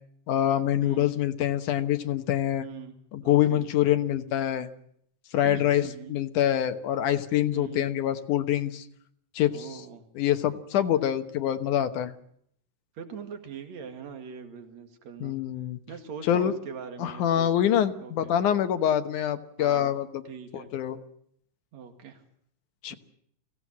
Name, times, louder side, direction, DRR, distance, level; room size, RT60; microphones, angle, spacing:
voice 1, 0.3-2.6 3.1-4.7 5.3-5.8 6.1-8.8 9.4-9.5 10.2-12.1 15.2-15.8 16.3-16.5 17.0-20.2 20.5-21.0 22.8-22.9, left 11 dB, 85° left, 8 dB, 2.7 m, -25 dB
voice 2, 0.8-1.1 2.6-2.9 3.2-3.7 5.4-6.2 7.5-7.9 9.5-10.1 12.9-15.4 15.9-17.7 18.0-18.3 19.6-19.9 20.2-20.7 21.7-22.2 22.9-23.0, right 7 dB, 65° right, 6 dB, 3.3 m, -42 dB
24.0 x 16.5 x 7.5 m, 0.69 s
omnidirectional pair, 3.5 m